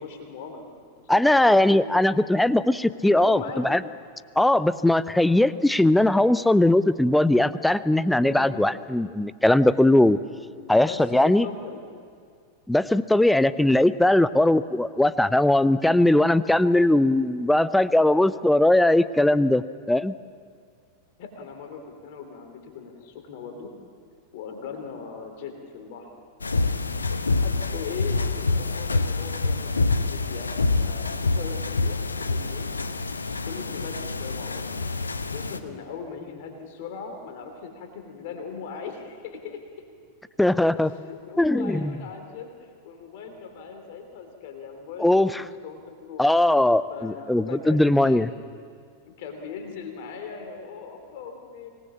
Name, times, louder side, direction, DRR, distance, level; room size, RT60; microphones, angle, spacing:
voice 1, 0.0-2.1 3.0-3.8 8.1-8.7 10.5-11.8 21.2-23.7 24.3-26.2 27.4-32.7 33.4-34.6 35.3-39.6 40.9-46.2 46.9-48.4 49.2-51.7, left 6 dB, 50° left, 5 dB, 3.3 m, -39 dB
voice 2, 1.1-3.8 4.4-10.2 10.7-11.5 12.7-20.1 40.4-40.9 41.4-41.9 45.0-45.4 46.2-48.3, left 1 dB, 5° left, 17 dB, 0.6 m, -20 dB
sound 1, 26.4-35.6, left 3 dB, 75° left, 0.9 m, -26 dB
25.0 x 19.5 x 7.3 m, 2.2 s
figure-of-eight pair, 90°, 0 cm